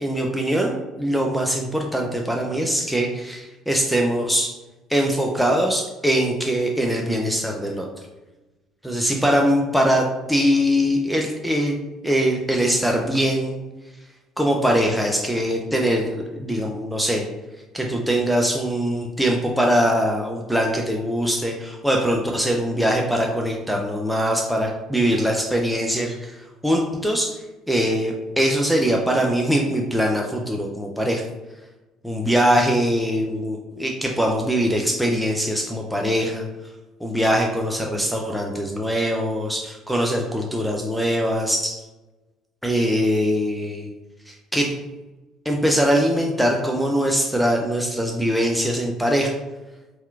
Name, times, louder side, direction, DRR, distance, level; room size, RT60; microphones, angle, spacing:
voice 1, 0.0-4.6 4.9-7.9 8.8-11.8 12.0-13.6 14.4-17.3 17.7-31.2 32.0-36.5 37.0-41.8 42.6-43.9 44.3-44.8 45.4-49.3, equal, ahead, 0 dB, 0.5 m, -22 dB
4.3 x 3.5 x 2.3 m, 1.1 s
figure-of-eight pair, 55°, 0 cm